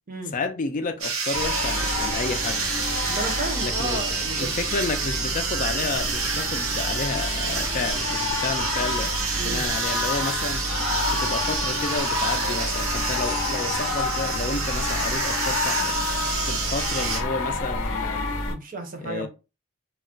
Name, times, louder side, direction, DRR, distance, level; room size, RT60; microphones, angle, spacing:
voice 1, 0.3-2.7 3.6-4.0 4.4-9.1 9.4-10.6 11.1-15.9 16.5-18.3 19.0-19.3, left 4 dB, 40° left, 0.4 m, -31 dB
sound 1, 1.0-17.2, right 5 dB, 85° right, 0.9 m, -28 dB
sound 2, 1.3-18.5, left 2 dB, 85° left, 0.6 m, -29 dB
voice 2, 3.1-4.6 9.3-9.6 18.5-19.3, right 2 dB, 40° right, 0.6 m, -33 dB
2.3 x 2.1 x 3.7 m
head